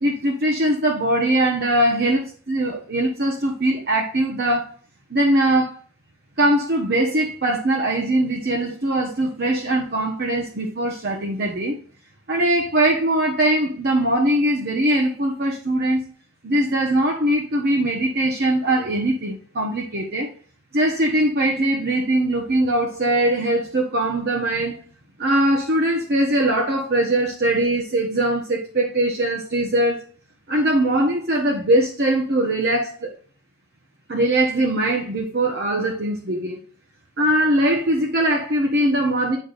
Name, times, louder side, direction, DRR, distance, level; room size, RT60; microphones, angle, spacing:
voice 1, 0.0-4.7 5.1-5.8 6.4-11.8 12.3-16.0 16.4-20.3 20.7-24.8 25.2-30.0 30.5-33.1 34.1-36.6 37.2-39.4, right 1 dB, 45° right, 0 dB, 1.0 m, -21 dB
8.5 x 5.3 x 2.6 m, 0.41 s
head